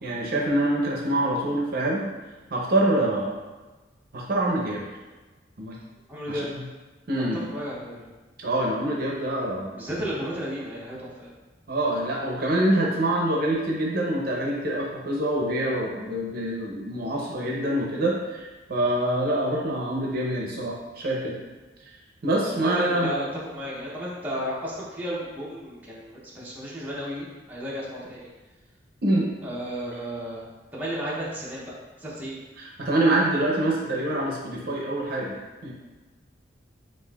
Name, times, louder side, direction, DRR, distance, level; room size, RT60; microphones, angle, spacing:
voice 1, 0.0-2.1 2.5-3.4 4.1-4.8 5.6-5.8 6.3-6.6 7.1-7.4 8.4-9.7 11.7-18.4 18.7-21.3 22.2-23.1 29.0-29.3 32.6-35.4 35.6-35.7, right 1 dB, 55° right, -2 dB, 0.6 m, -25 dB
voice 2, 6.1-6.6 7.2-8.1 9.7-11.3 22.4-28.3 29.4-32.4, equal, 10° right, -7 dB, 0.7 m, -33 dB
5.2 x 2.5 x 2.3 m, 1.2 s
head